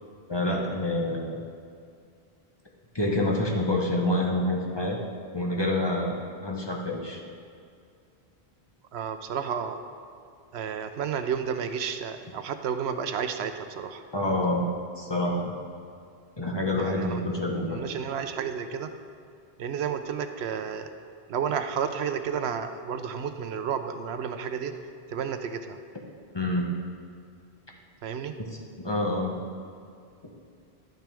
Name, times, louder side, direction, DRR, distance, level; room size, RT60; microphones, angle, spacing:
voice 1, 0.3-1.3 2.9-5.0 5.3-7.2 14.1-14.7 15.0-15.5 16.4-17.8 26.3-26.7 28.4-28.5 28.8-29.4, left 1 dB, 25° left, -1 dB, 1.0 m, -27 dB
voice 2, 8.9-9.8 10.5-14.0 16.7-17.2 17.7-18.9 19.6-20.9 21.3-24.7 25.1-25.8 28.0-28.3, right 7 dB, 80° right, 8 dB, 0.9 m, -31 dB
11.0 x 9.0 x 3.4 m, 2.3 s
omnidirectional pair, 1.1 m